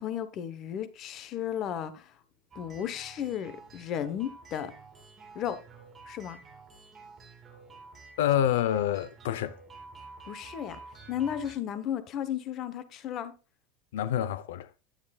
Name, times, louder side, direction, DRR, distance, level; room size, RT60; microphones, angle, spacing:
voice 1, 0.0-2.1 2.5-4.7 5.3-5.6 6.1-6.4 10.3-10.8 11.1-13.3, left 10 dB, 30° left, 1.0 m, -34 dB
sound 1, 2.5-11.5, right 4 dB, 15° right, 2.7 m, -50 dB
voice 2, 8.2-9.6 13.9-14.7, left 11 dB, 85° left, 0.7 m, -27 dB
12.5 x 9.9 x 2.3 m
supercardioid pair, 180°, 0 cm